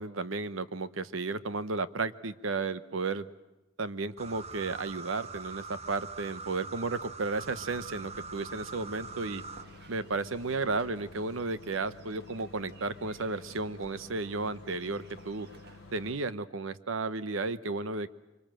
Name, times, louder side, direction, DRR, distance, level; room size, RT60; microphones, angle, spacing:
voice 1, 0.0-3.3 3.8-9.4 9.9-15.5 15.9-18.1, right 3 dB, 85° right, 13 dB, 0.9 m, -33 dB
sound 1, 4.2-9.6, right 4 dB, 30° right, 1.0 m, -43 dB
sound 2, 7.4-16.2, left 2 dB, 80° left, 0.9 m, -52 dB
sound 3, 8.7-16.1, right 2 dB, 55° right, 1.7 m, -57 dB
25.0 x 24.5 x 7.6 m, 1.0 s
head